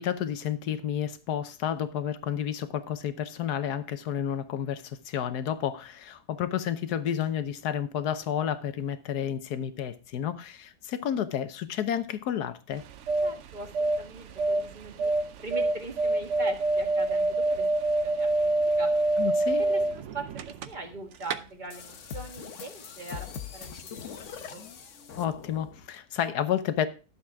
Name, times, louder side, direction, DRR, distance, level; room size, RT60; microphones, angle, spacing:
voice 1, 0.0-12.8 19.2-19.6 25.2-26.9, left 9 dB, 80° left, 1.4 m, -31 dB
sound 1, 12.7-20.9 21.2-21.4, right 2 dB, 60° right, 0.8 m, -26 dB
voice 2, 13.2-15.1 15.4-17.7 18.0-18.5 18.8-18.9 19.6-24.7, right 3 dB, 30° right, 1.7 m, -41 dB
sound 2, 21.7-25.9, left 7 dB, 55° left, 1.1 m, -42 dB
11.5 x 7.4 x 3.5 m
omnidirectional pair, 1.7 m